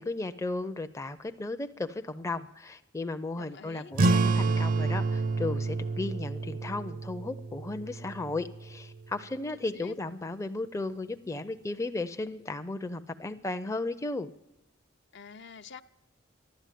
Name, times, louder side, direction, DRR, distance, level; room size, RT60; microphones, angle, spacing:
voice 1, 0.0-14.3, left 2 dB, 15° left, 8 dB, 0.5 m, -35 dB
voice 2, 3.3-3.9 9.5-9.9 15.1-15.8, left 6 dB, 65° left, 10 dB, 0.6 m, -47 dB
sound 1, 3.9-9.0, right 3 dB, 45° right, 0.5 m, -29 dB
13.5 x 11.5 x 9.1 m, 0.95 s
head